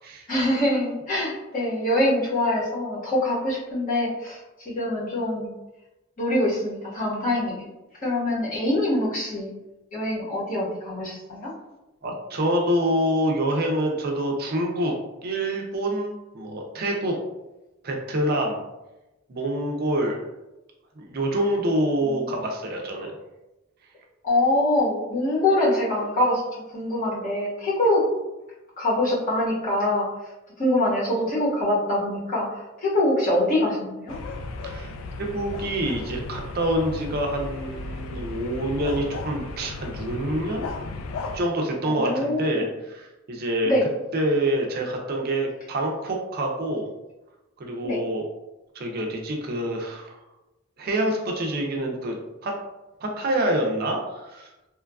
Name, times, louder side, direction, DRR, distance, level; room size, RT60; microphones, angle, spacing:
voice 1, 0.3-5.5 6.2-7.6 8.0-9.5 9.9-11.5 22.0-22.3 24.2-28.0 28.8-30.1 30.6-34.1 41.8-42.6 43.6-43.8 47.8-48.0, left 1 dB, 40° left, -7 dB, 1.0 m, -24 dB
voice 2, 12.0-14.9 15.2-17.2 17.8-18.6 19.3-20.2 21.0-23.1 34.6-34.9 35.2-40.7 41.3-43.7 44.1-46.9 47.6-48.3 48.7-50.2 50.8-52.2 52.4-52.6 53.0-54.5, right 1 dB, 50° right, 1 dB, 0.4 m, -26 dB
sound 1, 34.1-41.4, left 3 dB, 80° left, 0.3 m, -35 dB
3.0 x 2.3 x 2.3 m, 0.99 s
head